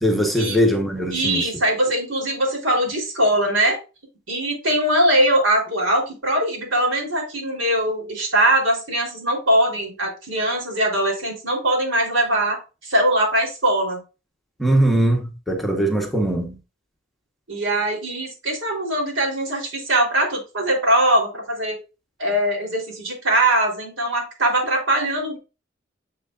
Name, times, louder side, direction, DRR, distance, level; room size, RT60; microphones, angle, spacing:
voice 1, 0.0-1.5 14.6-16.6, right 1 dB, ahead, 1.1 m, -20 dB
voice 2, 1.1-3.8 4.3-14.0 17.5-21.8 22.2-25.4, right 1 dB, 80° right, 3.3 m, -21 dB
6.6 x 6.3 x 2.4 m
head